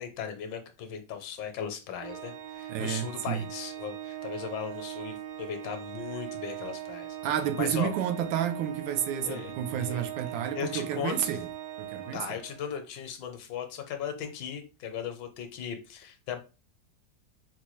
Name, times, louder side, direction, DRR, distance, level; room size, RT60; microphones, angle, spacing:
voice 1, 0.0-7.2 7.6-7.9 9.2-9.5 9.8-10.0 10.5-11.3 12.1-16.4, left 8 dB, 80° left, 1.3 m, -37 dB
Organ, 2.0-12.8, right 12 dB, 65° right, 0.9 m, -40 dB
voice 2, 2.7-3.4 7.2-11.5 11.8-12.2, right 9 dB, 90° right, 1.3 m, -30 dB
4.3 x 2.2 x 3.0 m
omnidirectional pair, 2.0 m